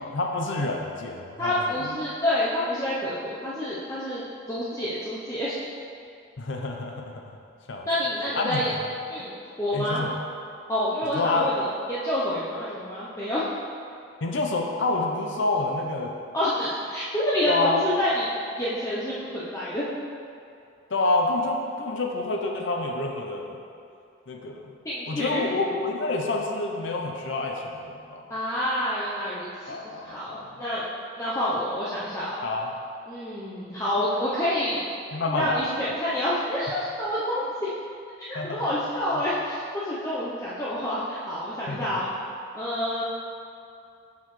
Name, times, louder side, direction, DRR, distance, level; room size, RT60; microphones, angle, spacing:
voice 1, 0.0-1.5 6.4-7.2 7.7-7.9 8.3-8.7 9.2-9.3 9.7-10.1 11.1-11.5 14.2-16.2 17.5-17.8 20.9-23.6 24.3-24.7 25.1-28.2 29.7-30.5 32.4-32.7 35.1-35.6 38.3-38.6 41.7-41.9, left 2 dB, 65° left, 2 dB, 0.6 m, -28 dB
voice 2, 1.4-5.6 7.9-8.7 9.1-10.1 10.7-13.5 16.3-18.3 18.6-19.9 24.8-25.4 28.3-30.9 31.2-32.4 33.1-34.8 35.3-37.7 38.3-42.1 42.5-43.0, left 1 dB, 15° left, -9 dB, 0.6 m, -28 dB
6.5 x 5.8 x 3.1 m, 2.5 s
head